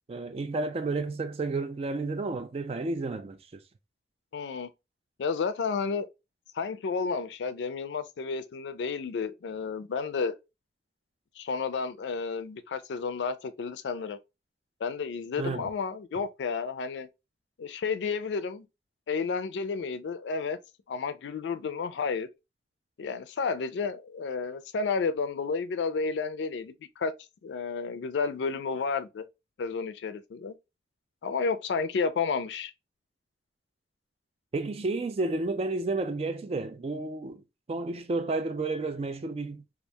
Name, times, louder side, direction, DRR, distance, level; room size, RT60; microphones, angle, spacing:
voice 1, 0.1-3.4 15.4-15.7 34.5-37.4 37.7-39.6, right 3 dB, 35° right, 0.3 m, -31 dB
voice 2, 4.3-4.7 5.2-6.1 6.5-10.4 11.4-14.2 14.8-17.1 17.6-18.6 19.1-20.6 20.9-22.3 23.0-27.1 27.4-29.3 29.6-30.6 31.2-32.7, left 5 dB, 85° left, 0.4 m, -31 dB
2.3 x 2.2 x 2.7 m
head